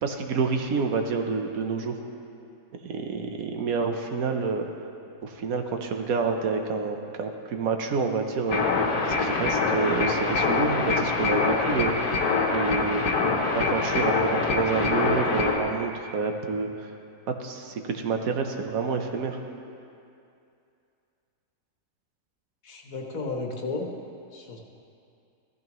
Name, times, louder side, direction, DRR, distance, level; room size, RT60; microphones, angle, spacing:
voice 1, 0.0-2.0 2.8-4.7 5.2-8.6 9.2-11.9 12.5-13.0 13.5-16.9 17.4-19.4, right 4 dB, 70° right, 4 dB, 1.2 m, -28 dB
sound 1, 8.5-15.6, left 4 dB, 85° left, 1.6 m, -25 dB
voice 2, 22.6-23.9 24.3-24.6, left 3 dB, 65° left, 1 dB, 1.5 m, -33 dB
15.0 x 14.0 x 3.1 m, 2.5 s
omnidirectional pair, 1.6 m